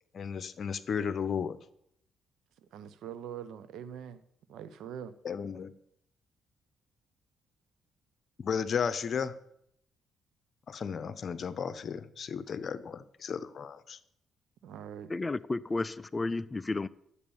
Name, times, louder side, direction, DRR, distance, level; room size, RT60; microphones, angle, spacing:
voice 1, 0.1-1.6 5.2-5.7 8.4-9.3 10.7-14.0, left 7 dB, 50° left, 0.9 m, -34 dB
voice 2, 2.7-4.2 4.5-5.1 14.6-15.1, right 9 dB, 80° right, 0.8 m, -43 dB
voice 3, 15.1-16.9, left 3 dB, 25° left, 0.5 m, -32 dB
11.0 x 8.4 x 7.1 m
cardioid pair, 90°, 0 cm